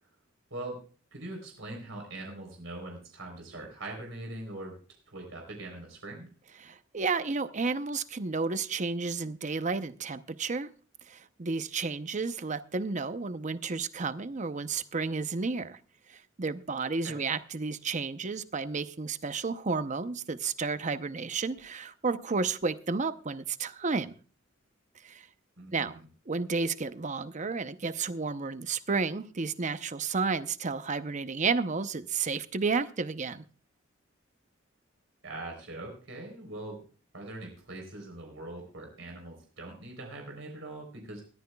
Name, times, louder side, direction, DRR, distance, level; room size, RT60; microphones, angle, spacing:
voice 1, 1.1-4.8 5.1-6.3 17.0-17.2 25.6-26.1 35.2-36.8 37.1-41.2, right 2 dB, 75° right, 3.7 m, -42 dB
voice 2, 6.6-10.7 11.1-15.8 16.1-24.1 25.0-25.3 25.7-26.0 26.3-33.4, right 4 dB, 40° right, 0.7 m, -32 dB
20.0 x 13.5 x 2.3 m
head